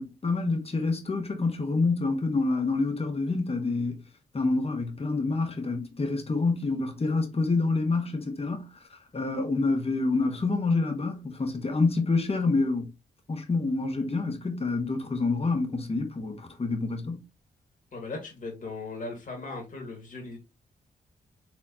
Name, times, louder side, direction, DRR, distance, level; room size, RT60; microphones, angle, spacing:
voice 1, 0.0-4.0 4.3-8.7 9.1-12.9 13.3-17.2, left 3 dB, 35° left, 1.4 m, -27 dB
voice 2, 17.9-20.4, left 3 dB, 50° left, 2.1 m, -38 dB
4.5 x 3.6 x 2.9 m
cardioid pair, 60°, 17 cm